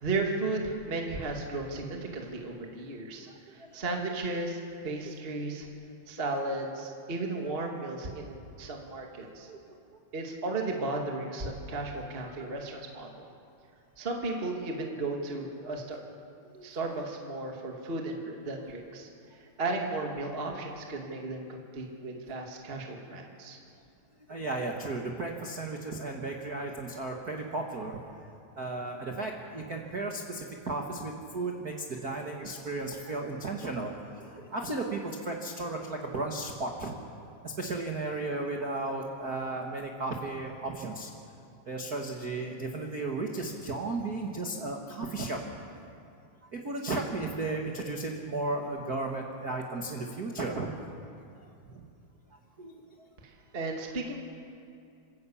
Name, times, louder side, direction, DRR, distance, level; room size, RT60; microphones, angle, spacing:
voice 1, 0.0-5.7 6.1-9.5 10.1-13.2 14.0-16.0 16.6-19.1 19.6-23.6 53.2-54.2, right 2 dB, 25° right, 1 dB, 1.3 m, -35 dB
voice 2, 3.3-4.0 9.5-9.8 12.4-12.5 16.5-16.7 24.3-28.3 28.6-36.9 37.4-41.1 41.6-45.4 46.5-50.7 51.4-51.8 52.6-52.7 53.0-53.1, right 2 dB, 55° right, 1 dB, 1.0 m, -35 dB
27.5 x 14.5 x 8.6 m, 2.5 s
omnidirectional pair, 4.2 m